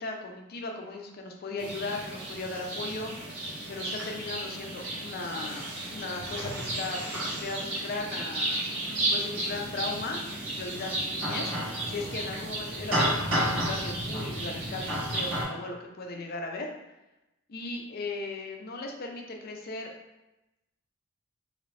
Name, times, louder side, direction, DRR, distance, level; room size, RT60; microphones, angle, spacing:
voice 1, 0.0-3.1 3.7-5.7 5.9-7.0 7.3-8.6 8.9-10.2 10.5-14.8 15.1-16.7 17.5-19.9, left 3 dB, 50° left, 2 dB, 0.5 m, -37 dB
sound 1, 1.6-15.4, right 1 dB, 80° right, 1.2 m, -32 dB
3.1 x 2.6 x 3.2 m, 0.95 s
head